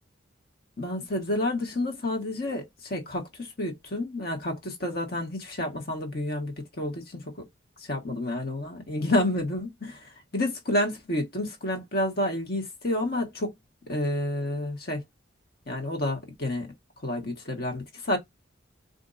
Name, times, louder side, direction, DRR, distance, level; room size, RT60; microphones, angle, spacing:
voice 1, 0.8-7.5 7.8-13.5 13.9-15.0 15.7-16.7 17.0-18.2, left 1 dB, 50° left, 1.3 m, -30 dB
4.4 x 2.6 x 2.6 m
head